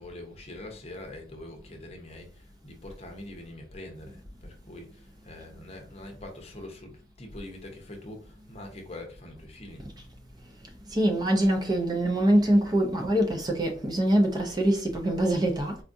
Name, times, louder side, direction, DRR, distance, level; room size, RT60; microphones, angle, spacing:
voice 1, 0.0-9.8, left 1 dB, 35° left, 0.7 m, -44 dB
voice 2, 10.9-15.8, right 1 dB, 20° right, 0.5 m, -24 dB
4.4 x 2.4 x 2.5 m
head